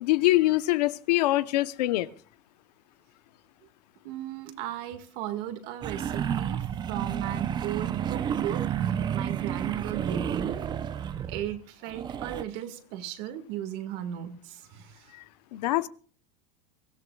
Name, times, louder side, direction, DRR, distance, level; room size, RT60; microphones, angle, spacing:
voice 1, 0.0-2.1 15.5-15.9, left 17 dB, 80° left, 0.9 m, -24 dB
voice 2, 4.0-8.7 9.1-10.6 11.0-15.1, right 11 dB, 50° right, 1.9 m, -36 dB
sound 1, 5.8-11.6 11.8-12.4, right 9 dB, 20° right, 0.6 m, -31 dB
23.5 x 16.0 x 2.4 m
supercardioid pair, 155°, 21 cm